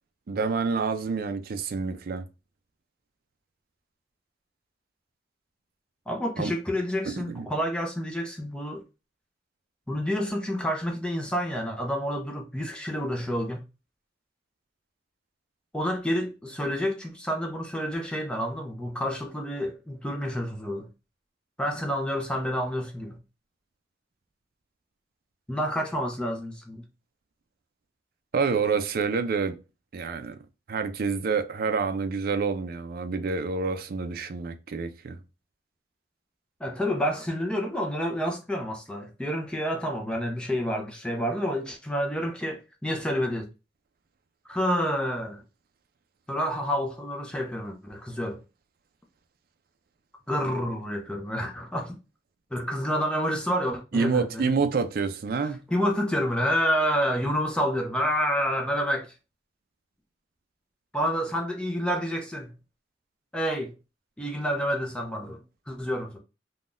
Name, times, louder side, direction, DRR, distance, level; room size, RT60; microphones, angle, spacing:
voice 1, 0.3-2.2 6.4-6.5 7.3-7.5 28.3-29.6 29.9-30.4 30.7-35.2 53.9-55.6, right 5 dB, 55° right, 0.4 m, -27 dB
voice 2, 6.1-8.8 9.9-13.6 15.7-20.9 21.6-23.2 25.5-26.8 36.6-43.5 44.4-45.4 46.3-48.4 50.3-52.0 52.5-54.6 55.7-59.1 60.9-62.5 63.3-63.7 64.2-66.2, equal, 5° left, 0.5 m, -29 dB
3.6 x 2.2 x 2.5 m
head